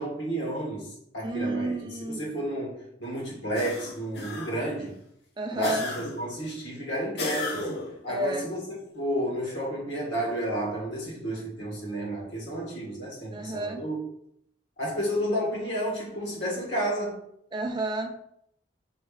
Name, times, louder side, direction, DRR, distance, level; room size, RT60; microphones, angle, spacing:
voice 1, 0.0-4.9 5.5-7.7 8.0-14.0 14.8-17.2, right 1 dB, 80° left, -3 dB, 1.4 m, -31 dB
voice 2, 1.2-2.2 5.4-5.9 8.1-8.5 13.3-13.8 17.5-18.2, right 2 dB, 25° right, 5 dB, 0.4 m, -30 dB
sound 1, 3.5-4.8 5.6-6.4 7.2-8.0, left 3 dB, 60° left, 0.7 m, -35 dB
4.7 x 3.2 x 2.3 m, 0.73 s
head